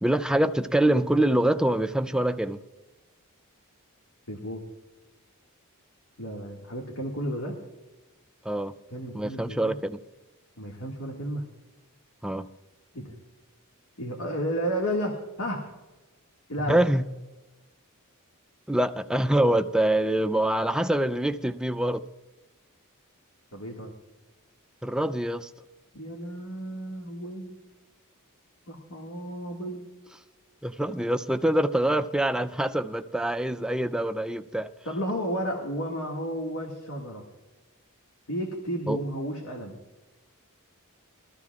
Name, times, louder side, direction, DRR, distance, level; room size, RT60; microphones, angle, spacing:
voice 1, 0.0-2.6 8.5-8.7 9.1-10.0 12.2-12.5 16.7-17.1 18.7-22.0 24.8-25.5 30.6-34.7 38.9-39.0, right 1 dB, 5° right, 0.4 m, -25 dB
voice 2, 4.3-4.6 6.2-7.6 8.9-9.8 10.6-11.4 12.9-13.1 14.0-15.6 16.5-16.8 23.5-23.9 25.9-27.6 28.7-29.9 34.9-37.2 38.3-39.8, equal, 70° left, 1.9 m, -32 dB
22.0 x 14.0 x 2.4 m
head